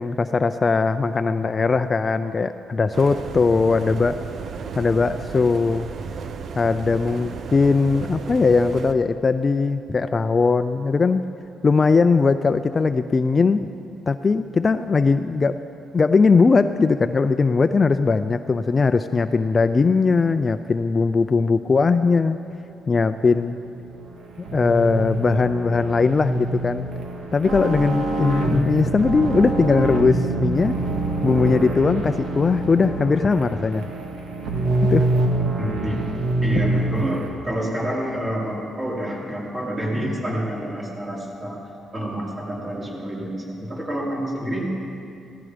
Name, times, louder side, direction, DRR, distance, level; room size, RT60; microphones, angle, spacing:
voice 1, 0.0-4.2 4.8-5.9 6.6-11.2 11.6-13.7 14.1-15.7 15.9-22.4 22.9-23.6 24.5-26.9 27.3-30.8 31.2-33.9 34.9-35.1, left 4 dB, 35° left, 10 dB, 0.5 m, -19 dB
sound 1, 2.9-8.9, right 5 dB, 60° right, 0.8 m, -34 dB
sound 2, 23.4-37.3, right 2 dB, 75° right, 2.0 m, -25 dB
voice 2, 35.6-36.0 36.4-41.6 41.9-44.7, equal, 25° right, -4 dB, 4.5 m, -28 dB
16.5 x 15.0 x 5.1 m, 2.6 s
cardioid pair, 90°, 0 cm